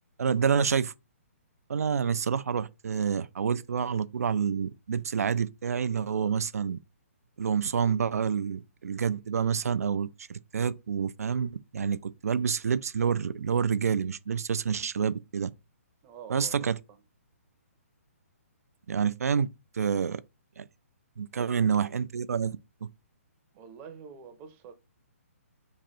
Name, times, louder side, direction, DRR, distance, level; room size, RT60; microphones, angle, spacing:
voice 1, 0.2-0.9 1.7-6.8 7.4-15.5 16.3-16.8 18.9-19.5 19.7-20.2 20.6-20.7 21.2-22.9, right 7 dB, 90° right, 0.4 m, -28 dB
voice 2, 16.0-17.0 21.3-21.9 23.5-24.7, right 7 dB, 20° right, 0.6 m, -47 dB
3.1 x 2.6 x 4.1 m
hypercardioid pair, 160°, 8 cm